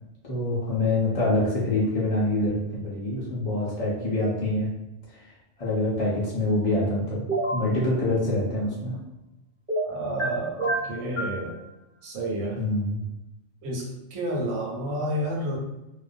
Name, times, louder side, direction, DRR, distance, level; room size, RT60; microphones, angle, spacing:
voice 1, 0.2-4.7 5.1-5.3 5.6-7.2 7.5-9.0 12.6-13.0, left 2 dB, 50° left, -6 dB, 0.4 m, -25 dB
sound 1, 7.3-7.6 9.7-10.3 10.6-11.4, right 2 dB, 15° right, 0.4 m, -27 dB
voice 2, 9.8-11.6 12.0-12.7 13.6-15.6, right 1 dB, 80° right, -2 dB, 1.1 m, -30 dB
2.4 x 2.1 x 2.5 m, 0.93 s
omnidirectional pair, 1.4 m